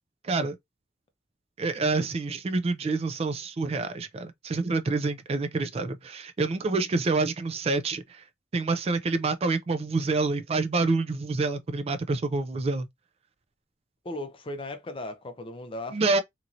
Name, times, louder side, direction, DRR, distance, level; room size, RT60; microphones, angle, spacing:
voice 1, 0.2-0.6 1.6-8.2 8.5-12.9 15.9-16.2, right 3 dB, 35° right, 0.3 m, -27 dB
voice 2, 14.0-16.2, left 1 dB, 30° left, 0.6 m, -37 dB
2.9 x 2.7 x 2.5 m
head